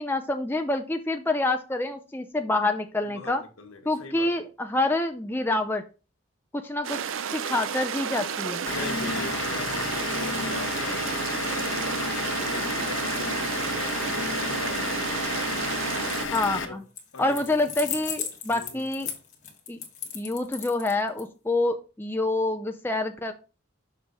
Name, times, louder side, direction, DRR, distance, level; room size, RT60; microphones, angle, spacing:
voice 1, 0.0-3.4 3.9-5.8 6.5-8.7 16.3-16.8 17.2-19.1 19.7-19.8 20.1-23.3, left 2 dB, 10° left, 0.5 m, -27 dB
voice 2, 3.0-4.4 8.7-12.1 12.4-15.1 16.6-16.8 17.1-17.6 18.5-18.9, left 3 dB, 80° left, 1.4 m, -42 dB
sound 1, 6.8-16.3, right 7 dB, 65° right, 0.5 m, -31 dB
Vehicle / Engine, 8.7-16.7, left 4 dB, 60° left, 1.0 m, -31 dB
sound 2, 16.1-16.6 17.0-21.2, left 8 dB, 35° left, 1.4 m, -36 dB
6.4 x 5.0 x 4.0 m
head